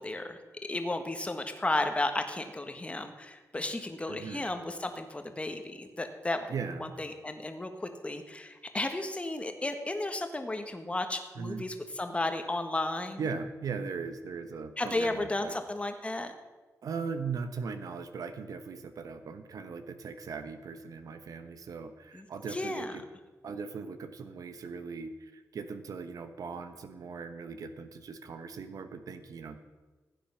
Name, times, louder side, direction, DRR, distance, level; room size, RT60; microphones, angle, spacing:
voice 1, 0.0-6.4 6.8-13.2 14.8-16.3 22.1-22.2 22.5-22.9, left 2 dB, 20° left, 7 dB, 1.5 m, -33 dB
voice 2, 4.1-4.5 6.5-6.9 11.3-11.6 13.2-15.6 16.8-23.0 23.4-29.6, right 5 dB, 75° right, 9 dB, 1.1 m, -39 dB
15.5 x 9.1 x 5.8 m, 1.2 s
cardioid pair, 90°, 6 cm